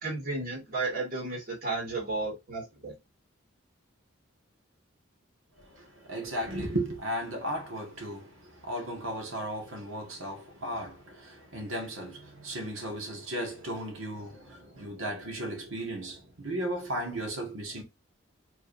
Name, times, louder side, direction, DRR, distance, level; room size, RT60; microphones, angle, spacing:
voice 1, 0.0-2.9, right 3 dB, 45° right, 2.1 m, -33 dB
voice 2, 5.7-17.8, right 1 dB, 85° right, 1.7 m, -35 dB
5.1 x 3.5 x 2.7 m
head